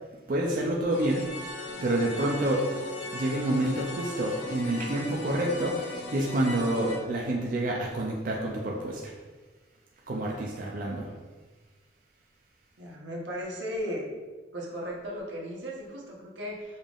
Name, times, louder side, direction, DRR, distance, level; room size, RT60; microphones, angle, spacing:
voice 1, 0.3-1.2 1.8-2.6 3.1-9.1 10.1-11.1, right 1 dB, 50° right, -1 dB, 0.4 m, -28 dB
sound 1, 0.9-7.0, left 2 dB, 80° left, 0.7 m, -38 dB
voice 2, 12.8-14.1 14.5-16.8, equal, 90° right, -2 dB, 0.9 m, -36 dB
5.4 x 3.5 x 2.4 m, 1.3 s
head